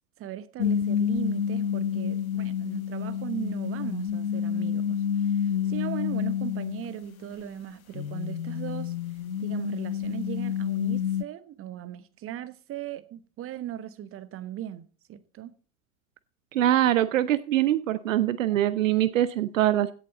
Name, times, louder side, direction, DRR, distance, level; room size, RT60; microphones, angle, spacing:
voice 1, 0.2-8.9 9.4-15.5, right 11 dB, 30° right, 1.1 m, -38 dB
sound 1, 0.6-11.2, left 8 dB, 85° left, 0.6 m, -29 dB
voice 2, 16.5-19.9, right 12 dB, 65° right, 0.7 m, -23 dB
16.5 x 7.4 x 3.9 m
figure-of-eight pair, 75°, 41 cm